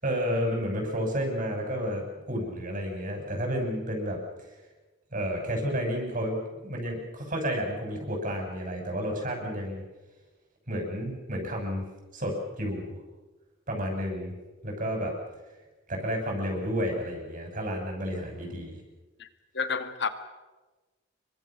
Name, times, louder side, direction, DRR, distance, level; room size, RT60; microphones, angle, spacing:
voice 1, 0.0-4.2 5.1-6.4 6.6-9.8 10.7-11.8 12.1-13.0 13.7-14.3 14.6-15.1 15.9-18.8, equal, 45° right, 2 dB, 6.7 m, -31 dB
voice 2, 19.5-20.1, left 5 dB, 60° left, 9 dB, 2.0 m, -29 dB
27.5 x 24.0 x 6.1 m, 1.2 s
head